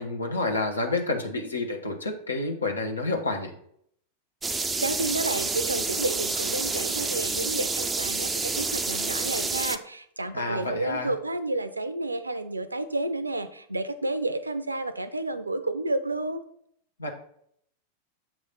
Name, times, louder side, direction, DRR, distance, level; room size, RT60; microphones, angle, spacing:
voice 1, 0.0-3.5 10.3-11.1 17.0-17.1, left 2 dB, 75° left, 3 dB, 1.0 m, -29 dB
sound 1, 4.4-9.8, right 3 dB, 15° right, 0.4 m, -29 dB
voice 2, 4.8-16.4, right 2 dB, 80° right, 12 dB, 0.4 m, -30 dB
7.4 x 3.1 x 5.3 m, 0.68 s
figure-of-eight pair, 90°, 0 cm